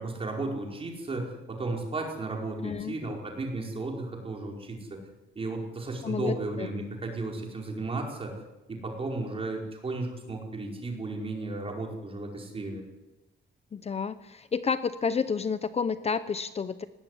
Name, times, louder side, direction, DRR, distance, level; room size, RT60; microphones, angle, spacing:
voice 1, 0.0-5.0 5.3-8.3 8.7-12.8, right 2 dB, 30° right, 0 dB, 4.9 m, -34 dB
voice 2, 2.6-3.0 6.0-6.7 13.7-16.9, left 6 dB, 35° left, 13 dB, 0.7 m, -30 dB
18.5 x 16.5 x 9.9 m, 1.0 s
wide cardioid pair, 160°, 19 cm